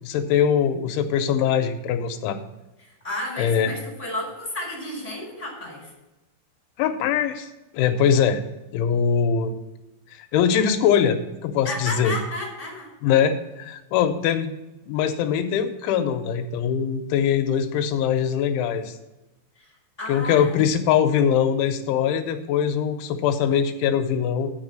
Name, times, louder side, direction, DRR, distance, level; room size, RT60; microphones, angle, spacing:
voice 1, 0.0-2.4 3.4-3.7 6.8-7.5 7.7-8.4 8.7-9.5 10.1-12.2 13.0-14.5 14.9-18.9 20.1-24.5, left 8 dB, 90° left, 7 dB, 3.1 m, -22 dB
voice 2, 2.8-5.9 11.6-12.9 19.6-19.7 20.0-20.5, left 1 dB, 10° left, -3 dB, 3.5 m, -32 dB
8.1 x 6.1 x 7.6 m, 1.0 s
omnidirectional pair, 5.6 m